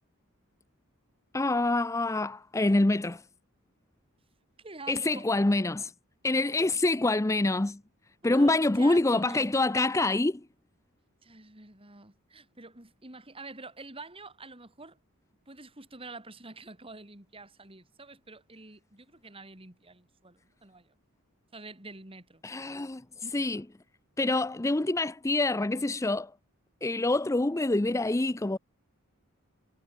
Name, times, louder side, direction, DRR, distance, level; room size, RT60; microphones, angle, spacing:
voice 1, 1.3-3.2 4.9-5.9 6.2-7.8 8.2-10.4 22.4-23.0 23.3-23.6 24.2-26.3 26.8-28.6, left 2 dB, 15° left, 0.5 m, -26 dB
voice 2, 4.6-5.2 8.2-9.5 11.2-15.0 15.5-20.9 21.5-22.4 23.2-23.6, right 3 dB, 25° right, 3.4 m, -47 dB
head